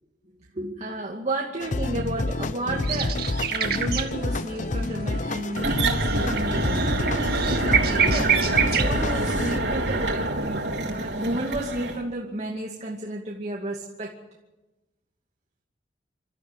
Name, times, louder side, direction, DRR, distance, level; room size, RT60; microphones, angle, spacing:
voice 1, 0.5-7.0 7.6-14.1, right 1 dB, 40° right, -1 dB, 2.4 m, -32 dB
sound 1, 1.6-9.6, left 2 dB, 45° left, 0.8 m, -29 dB
sound 2, 2.8-4.6 4.8-9.1, right 7 dB, 60° right, 2.2 m, -27 dB
sound 3, 5.6-12.0, right 2 dB, 85° right, 3.7 m, -26 dB
27.5 x 13.5 x 9.1 m, 1.0 s
head